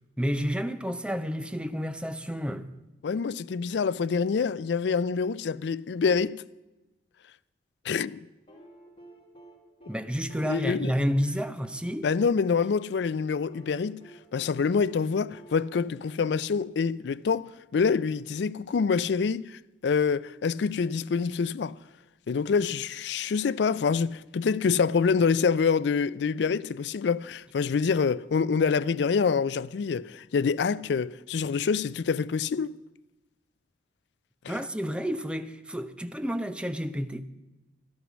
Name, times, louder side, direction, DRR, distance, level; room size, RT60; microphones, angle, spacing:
voice 1, 0.2-2.7 9.9-12.1 34.5-37.2, equal, 5° right, 0.5 m, -30 dB
voice 2, 3.0-6.4 7.9-8.2 10.4-10.9 12.0-14.0 14.3-21.8 22.3-32.7 34.4-34.6, left 5 dB, 65° left, 0.4 m, -26 dB
sound 1, 8.5-12.6 13.5-17.1 18.5-18.6, right 2 dB, 30° left, 2.1 m, -52 dB
12.5 x 11.5 x 6.2 m
head